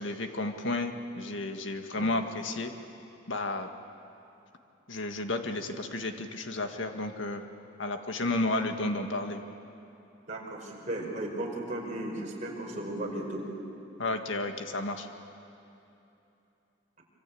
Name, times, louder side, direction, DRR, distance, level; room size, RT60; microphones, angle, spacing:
voice 1, 0.0-2.7 3.3-3.7 4.9-7.5 7.8-9.5 14.0-15.1, left 2 dB, 75° left, 5 dB, 1.8 m, -32 dB
voice 2, 10.3-13.5, right 1 dB, 40° right, -1 dB, 5.2 m, -35 dB
26.0 x 25.5 x 8.6 m, 2.9 s
head